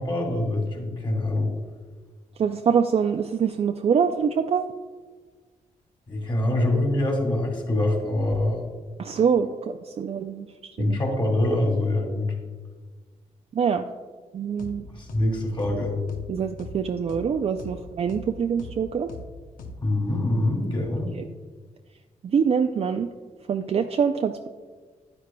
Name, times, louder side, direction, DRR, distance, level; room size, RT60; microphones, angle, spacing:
voice 1, 0.0-1.5 6.1-8.6 10.8-12.3 14.9-15.9 19.8-21.1, left 1 dB, 35° left, 1 dB, 2.3 m, -24 dB
voice 2, 2.4-4.7 9.0-11.0 13.5-13.8 14.3-14.9 16.3-19.1 22.3-23.1 23.5-24.5, right 6 dB, 45° right, 6 dB, 0.4 m, -24 dB
sound 1, 14.6-14.8 15.1-15.3 15.6-15.8 16.1-16.3 16.6-16.8 17.1-17.3 17.6-17.8 18.1-18.3 18.6-18.8 19.1-19.3 19.6-19.8, left 2 dB, 85° left, 0.8 m, -39 dB
9.7 x 9.5 x 2.2 m, 1.4 s
cardioid pair, 85°, 14 cm